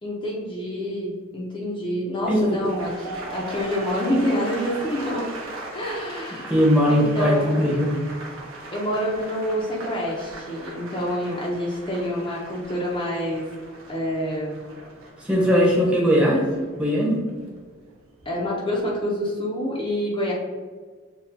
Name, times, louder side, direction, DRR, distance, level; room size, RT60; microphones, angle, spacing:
voice 1, 0.0-5.3 5.7-6.6 6.9-7.7 8.7-13.4 13.9-14.6 18.3-20.3, equal, 25° left, -4 dB, 0.6 m, -27 dB
sound 1, 2.2-18.3 18.6-19.0, right 2 dB, 75° right, 0.9 m, -39 dB
voice 2, 6.5-7.9 15.2-16.4 16.8-17.2, equal, 5° right, -4 dB, 0.9 m, -19 dB
6.6 x 2.3 x 2.6 m, 1.5 s
head